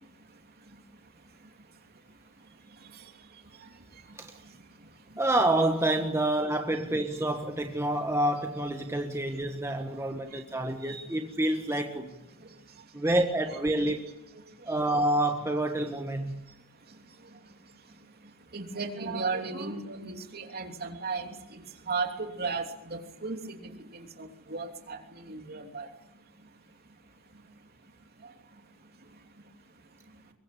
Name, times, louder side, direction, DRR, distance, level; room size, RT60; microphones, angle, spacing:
voice 1, 5.2-12.1 12.9-14.0 14.7-16.4, right 1 dB, 15° right, 1.4 m, -28 dB
voice 2, 18.5-21.6 21.9-23.4 23.6-25.9, right 4 dB, 45° right, 3.1 m, -35 dB
23.5 x 22.5 x 8.6 m
head